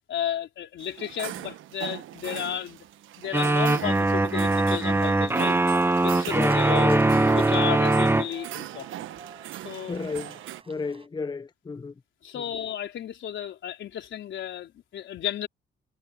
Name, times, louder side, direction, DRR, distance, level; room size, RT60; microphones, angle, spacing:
voice 1, 0.1-2.8 3.2-5.6 6.0-6.9 7.3-9.0 9.6-10.0 12.2-15.5, left 10 dB, 70° left, 4.1 m, -33 dB
sound 1, 0.8-10.6, right 13 dB, 85° right, 1.1 m, -39 dB
sound 2, 3.3-8.2, right 2 dB, 10° right, 1.0 m, -22 dB
sound 3, 5.5-11.1, right 4 dB, 30° right, 5.3 m, -50 dB
voice 2, 6.3-7.0 9.9-10.4 10.7-11.9, left 4 dB, 20° left, 0.6 m, -32 dB
cardioid pair, 90°, 20 cm